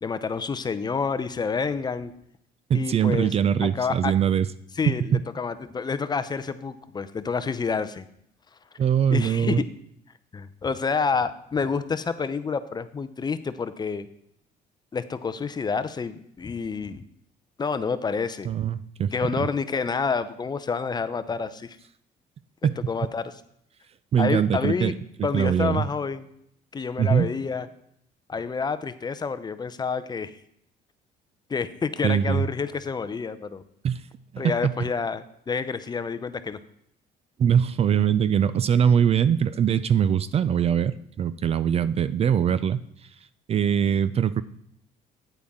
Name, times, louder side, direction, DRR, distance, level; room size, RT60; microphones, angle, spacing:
voice 1, 0.0-2.1 2.7-3.3 3.6-4.1 4.8-8.0 9.1-9.6 10.3-14.1 14.9-17.0 17.6-18.5 19.1-21.8 22.9-23.3 24.2-24.9 25.2-26.2 26.7-27.7 28.3-30.4 31.5-33.6 34.4-36.6, left 5 dB, 25° left, 12 dB, 0.5 m, -28 dB
voice 2, 2.7-4.5 4.9-5.2 8.8-9.6 18.5-19.1 19.4-19.5 22.6-22.9 24.1-25.9 27.0-27.3 32.0-32.4 33.8-34.0 34.3-34.7 37.4-42.8 43.5-44.4, right 8 dB, 35° right, 15 dB, 0.4 m, -22 dB
9.1 x 8.5 x 3.6 m, 0.72 s
cardioid pair, 110°, 17 cm